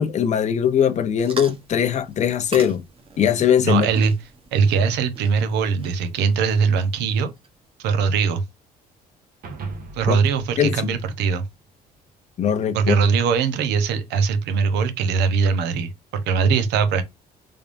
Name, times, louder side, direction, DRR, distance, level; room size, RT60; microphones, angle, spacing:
voice 1, 0.0-2.8 3.2-3.9 10.1-10.2 10.6-10.9 12.4-13.0, left 8 dB, 45° left, 0.6 m, -20 dB
sound 1, 1.2-7.5, right 4 dB, 30° right, 1.0 m, -41 dB
voice 2, 3.6-4.1 4.5-7.3 7.8-8.4 9.9-11.4 12.7-17.0, right 5 dB, 85° right, 0.9 m, -21 dB
sound 2, 9.4-11.9, right 3 dB, 60° right, 1.2 m, -38 dB
3.4 x 3.4 x 2.5 m
cardioid pair, 110°, 17 cm